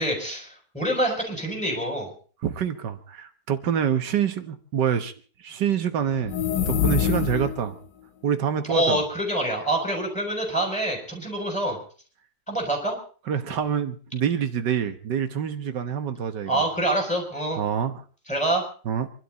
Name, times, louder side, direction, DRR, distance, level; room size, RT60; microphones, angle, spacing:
voice 1, 0.0-2.1 8.7-11.8 12.5-12.9 16.5-17.6 18.3-18.6, right 1 dB, 5° left, 0 dB, 7.0 m, -26 dB
voice 2, 2.4-5.1 5.4-7.8 8.2-9.0 13.3-16.6 17.6-18.0 18.9-19.1, right 8 dB, 90° right, 9 dB, 1.9 m, -26 dB
sound 1, 6.2-7.7, left 10 dB, 90° left, 1.7 m, -25 dB
26.0 x 12.5 x 4.1 m, 0.41 s
omnidirectional pair, 1.8 m